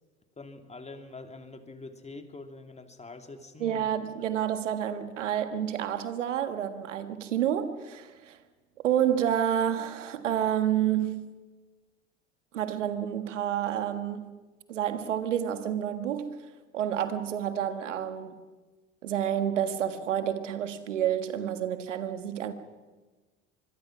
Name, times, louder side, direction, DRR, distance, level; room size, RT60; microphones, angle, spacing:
voice 1, 0.4-3.9, left 3 dB, 20° left, 2.6 m, -45 dB
voice 2, 3.6-8.4 8.8-11.3 12.5-14.4 14.7-16.4 16.7-18.4 19.0-22.5, right 10 dB, 85° right, 1.6 m, -29 dB
25.0 x 22.0 x 6.0 m
hypercardioid pair, 75°, 36 cm